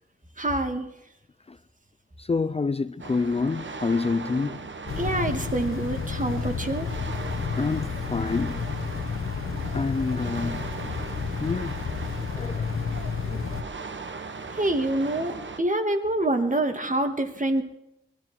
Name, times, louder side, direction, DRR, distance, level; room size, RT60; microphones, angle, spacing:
voice 1, 0.4-0.9 5.0-6.9 14.6-17.6, right 1 dB, 40° right, 2.6 m, -26 dB
voice 2, 2.2-4.6 7.3-8.7 9.7-10.6 11.4-11.8 12.4-12.7 13.2-13.5, left 4 dB, 30° left, 0.5 m, -28 dB
sound 1, 3.0-15.6, right 4 dB, 65° right, 1.4 m, -38 dB
sound 2, 4.9-13.6, left 6 dB, 85° left, 1.1 m, -31 dB
22.5 x 13.5 x 4.6 m
cardioid pair, 50°, 21 cm